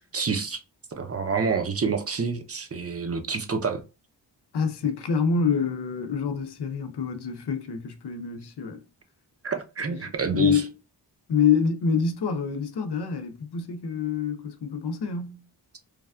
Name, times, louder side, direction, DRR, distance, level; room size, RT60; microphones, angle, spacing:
voice 1, 0.1-0.6 1.0-3.8 9.4-10.6, right 5 dB, 35° right, 0.6 m, -28 dB
voice 2, 4.5-8.8 10.0-10.7 11.3-15.4, left 6 dB, 65° left, 0.6 m, -26 dB
3.2 x 2.3 x 2.3 m
cardioid pair, 55°, 44 cm